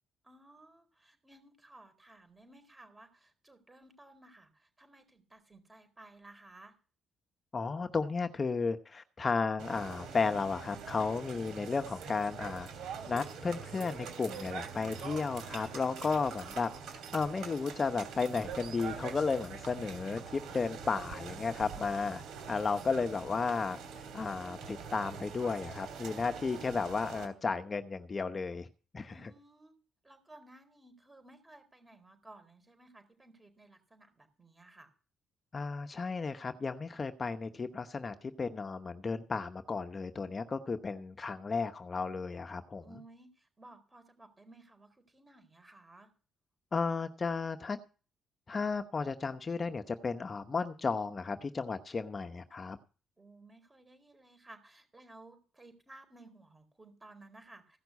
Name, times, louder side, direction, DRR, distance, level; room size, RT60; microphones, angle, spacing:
voice 1, 0.2-6.8 29.1-29.7 30.0-34.9 42.8-46.1 53.2-57.8, right 2 dB, 20° right, 8 dB, 4.3 m, -57 dB
voice 2, 7.5-12.7 13.1-22.2 22.5-23.8 24.1-28.7 28.9-29.3 35.5-42.8 46.7-47.8 48.5-52.8, left 4 dB, 35° left, 8 dB, 0.9 m, -34 dB
sound 1, 9.6-27.3, right 6 dB, 80° right, 3.1 m, -44 dB
16.0 x 6.0 x 8.2 m, 0.36 s
cardioid pair, 90°, 0 cm